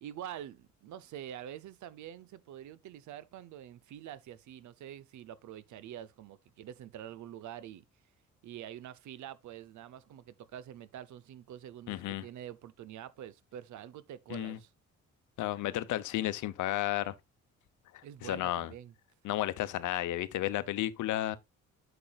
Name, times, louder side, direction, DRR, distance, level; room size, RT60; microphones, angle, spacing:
voice 1, 0.0-7.8 8.4-14.7 18.0-18.9, right 11 dB, 70° right, 0.7 m, -46 dB
voice 2, 11.9-12.2 14.3-14.6 15.4-17.1 17.9-18.7 19.2-21.4, left 14 dB, 80° left, 0.8 m, -33 dB
8.6 x 6.8 x 2.4 m
cardioid pair, 90°, 30 cm